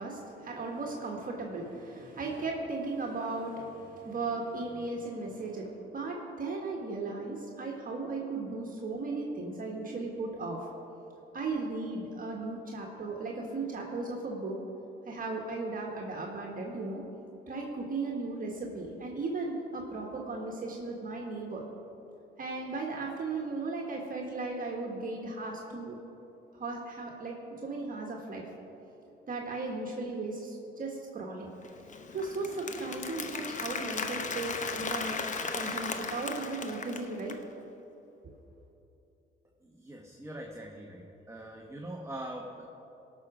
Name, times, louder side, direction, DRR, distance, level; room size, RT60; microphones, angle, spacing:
voice 1, 0.0-10.7 11.3-14.6 15.1-17.0 17.5-21.6 22.4-26.0 26.5-27.4 27.6-28.5 29.3-31.5 32.1-35.2 35.5-37.3, right 3 dB, 45° right, -1 dB, 1.5 m, -36 dB
Applause, 31.6-37.4, left 4 dB, 40° left, 0.9 m, -36 dB
voice 2, 39.6-42.6, right 1 dB, 15° right, 0 dB, 1.0 m, -42 dB
17.5 x 6.3 x 5.0 m, 3.0 s
cardioid pair, 90°, 20 cm